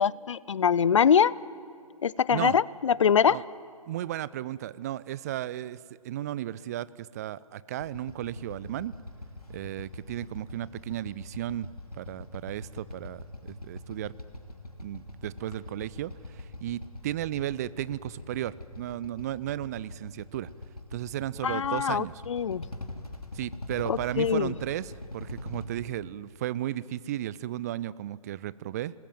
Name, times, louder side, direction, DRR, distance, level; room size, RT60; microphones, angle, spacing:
voice 1, 0.0-1.3 2.0-3.4 21.4-22.7 23.9-24.5, left 7 dB, 55° left, 22 dB, 0.6 m, -23 dB
voice 2, 2.3-2.6 3.3-3.4 3.9-8.9 9.5-11.7 11.9-14.1 14.8-20.5 20.9-22.2 23.3-28.9, right 13 dB, 25° right, 19 dB, 0.5 m, -34 dB
Motorcycle / Idling, 7.7-25.6, left 1 dB, 85° left, 2.9 m, -43 dB
27.5 x 20.5 x 7.6 m, 2.5 s
figure-of-eight pair, 130°, 19 cm